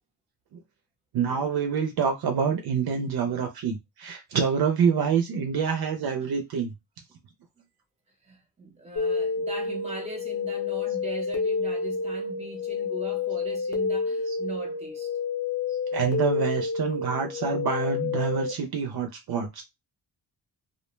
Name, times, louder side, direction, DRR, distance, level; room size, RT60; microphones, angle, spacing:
voice 1, 1.1-6.7 14.3-14.4 15.9-19.6, right 6 dB, 60° right, 0.5 m, -26 dB
voice 2, 8.2-15.1, right 2 dB, 15° right, 0.8 m, -40 dB
sound 1, 9.0-18.5, left 4 dB, 35° left, 0.6 m, -29 dB
2.3 x 2.1 x 3.1 m
wide cardioid pair, 175°, 43 cm